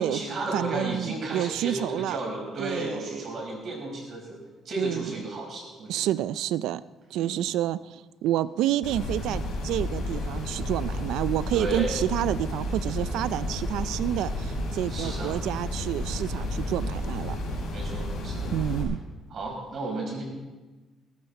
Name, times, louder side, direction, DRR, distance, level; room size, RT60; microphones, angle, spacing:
voice 1, 0.0-4.4 4.7-6.1 7.1-7.4 11.5-11.9 14.9-15.3 17.7-18.5 19.3-20.2, right 2 dB, 50° right, -1 dB, 5.5 m, -33 dB
voice 2, 0.5-2.2 2.6-3.2 4.8-5.1 5.9-6.8 7.1-17.4 18.5-19.0, right 12 dB, 85° right, 17 dB, 0.4 m, -29 dB
sound 1, 8.8-18.8, left 1 dB, 85° left, 4.9 m, -31 dB
18.0 x 13.5 x 4.3 m, 1.2 s
cardioid pair, 125°, 0 cm